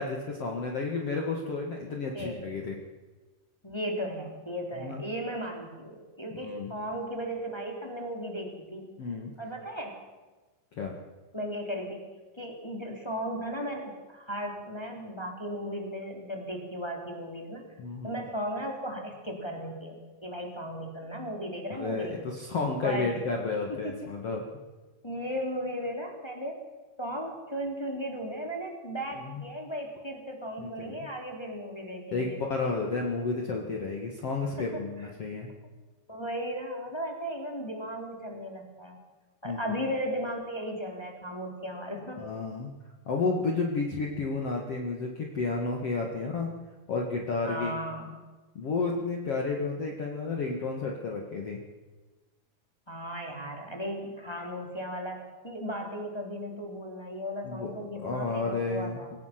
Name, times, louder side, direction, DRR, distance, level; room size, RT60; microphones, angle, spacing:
voice 1, 0.0-2.7 4.8-5.0 6.4-6.7 9.0-9.3 10.8-10.9 17.8-18.2 21.7-24.4 29.2-29.3 30.6-31.1 32.1-35.5 39.4-39.6 42.2-42.7 43.0-46.5 46.9-47.7 48.5-51.6 57.4-57.7 58.0-59.2, left 3 dB, 60° left, 0 dB, 1.5 m, -31 dB
voice 2, 3.6-8.9 9.4-10.0 11.3-12.1 12.4-17.8 18.0-22.2 22.8-23.2 23.7-24.1 25.0-26.6 27.0-32.4 34.6-34.8 36.1-39.0 39.4-42.2 47.4-48.1 52.9-59.1, equal, 10° left, 1 dB, 1.9 m, -36 dB
24.0 x 18.0 x 6.0 m, 1.2 s
omnidirectional pair, 6.0 m